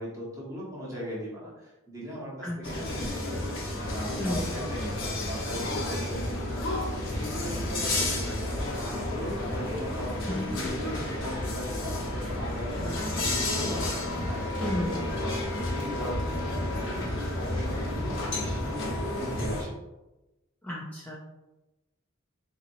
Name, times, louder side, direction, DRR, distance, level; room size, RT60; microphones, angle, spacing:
voice 1, 0.0-3.4 3.9-14.7 15.2-19.7, equal, 15° right, -7 dB, 1.1 m, -39 dB
voice 2, 2.4-2.9 4.2-4.5 10.2-10.6 14.6-15.0 20.6-21.1, left 1 dB, 10° left, -6 dB, 0.4 m, -33 dB
sound 1, 2.6-19.6, left 1 dB, 60° left, 1.1 m, -31 dB
4.0 x 2.9 x 2.6 m, 1.0 s
head